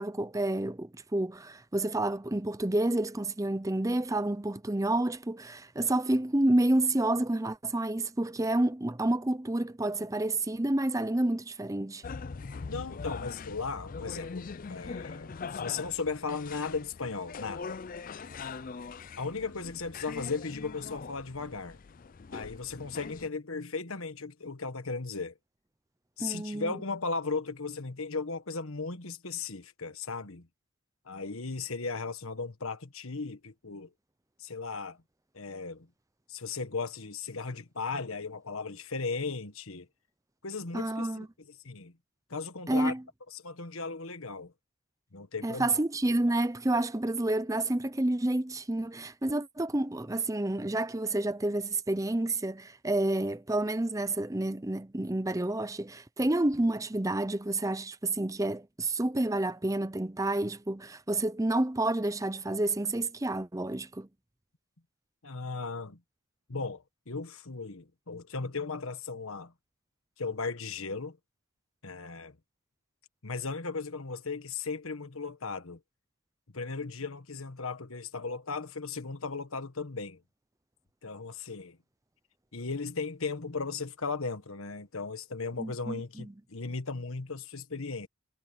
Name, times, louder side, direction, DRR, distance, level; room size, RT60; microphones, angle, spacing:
voice 1, 0.0-12.0 26.2-26.7 40.7-41.3 42.7-43.0 45.4-64.1 85.6-86.3, right 1 dB, 15° right, 0.6 m, -29 dB
sound 1, 12.0-23.3, left 5 dB, 40° left, 0.4 m, -42 dB
voice 2, 12.7-17.8 19.2-21.8 22.3-25.4 26.2-30.5 31.0-33.9 34.4-35.0 35.3-35.9 36.3-39.9 40.4-41.9 42.3-42.9 43.3-44.5 45.1-45.8 65.2-66.0 66.5-69.5 70.2-71.2 71.8-72.3 73.2-75.8 76.5-80.2 81.0-81.8 82.5-88.1, left 4 dB, 70° left, 1.5 m, -36 dB
head